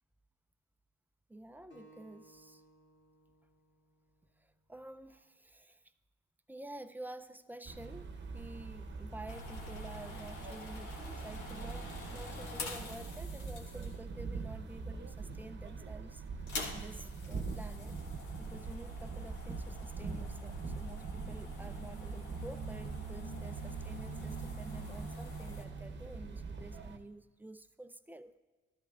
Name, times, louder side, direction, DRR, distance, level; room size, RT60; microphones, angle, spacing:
voice 1, 1.3-2.6 4.4-5.8 6.5-16.2 16.7-18.0 18.4-28.4, right 2 dB, 5° right, 11 dB, 0.4 m, -50 dB
Acoustic guitar, 1.7-5.0, right 1 dB, 55° left, 2.3 m, -63 dB
sound 1, 7.6-27.0, right 4 dB, 35° right, 0.9 m, -43 dB
sound 2, 9.3-14.2 14.9-15.4 15.7-15.8 16.3-25.6, left 2 dB, 85° left, 1.7 m, -47 dB
13.0 x 13.0 x 2.4 m, 1.3 s
cardioid pair, 90°, 30 cm